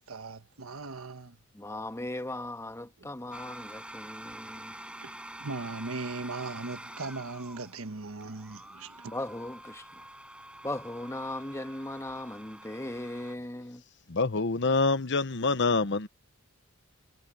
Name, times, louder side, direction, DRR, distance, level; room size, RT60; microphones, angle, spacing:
voice 1, 0.0-1.4 5.0-5.1 5.4-9.1, right 3 dB, 85° right, 1.3 m, -38 dB
voice 2, 1.5-4.8 9.0-10.1 10.6-13.8, left 1 dB, 15° left, 1.5 m, -38 dB
sound 1, 3.3-13.4, right 1 dB, 5° right, 6.3 m, -47 dB
voice 3, 14.1-16.1, left 3 dB, 60° left, 1.0 m, -26 dB
head